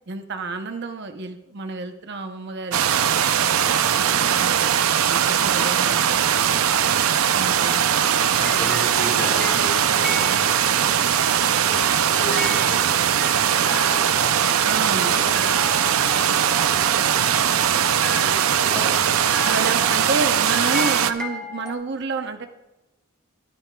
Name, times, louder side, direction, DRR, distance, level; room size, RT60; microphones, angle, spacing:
voice 1, 0.1-6.1 7.3-7.9 14.6-15.1 19.4-22.5, right 3 dB, 55° right, 6 dB, 0.7 m, -30 dB
sound 1, 2.7-21.1, right 9 dB, 85° right, 0.5 m, -20 dB
voice 2, 3.9-4.3 6.8-7.0 8.4-11.1 11.6-11.8 12.1-13.1 13.5-14.4 15.1-16.2 16.6-17.0 17.3-19.4, equal, 40° left, -2 dB, 3.5 m, -36 dB
sound 2, 7.6-11.0 11.8-21.7, left 2 dB, 5° left, 0.6 m, -36 dB
20.5 x 9.1 x 2.3 m, 1.0 s
head